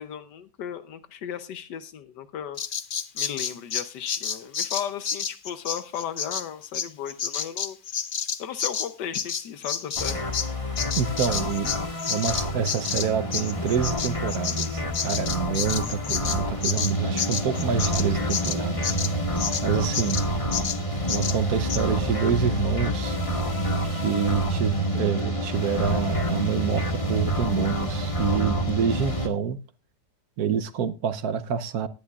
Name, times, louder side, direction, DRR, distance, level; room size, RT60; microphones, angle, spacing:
voice 1, 0.0-2.6 3.1-7.8 8.4-10.2, left 9 dB, 80° left, 11 dB, 1.4 m, -35 dB
Bird vocalization bird call bird song, 2.6-10.5 10.8-19.7 19.9-20.3 20.5-20.8 21.1-21.4 21.7-21.8, left 7 dB, 55° left, 0.5 m, -30 dB
sound 1, 10.0-29.3, equal, 20° left, 1.5 m, -28 dB
voice 2, 11.0-11.8 12.1-19.0 19.6-20.2 21.1-23.2 23.8-29.6 30.4-31.9, right 7 dB, 65° right, 11 dB, 1.2 m, -27 dB
18.0 x 10.5 x 2.4 m, 0.31 s
omnidirectional pair, 1.8 m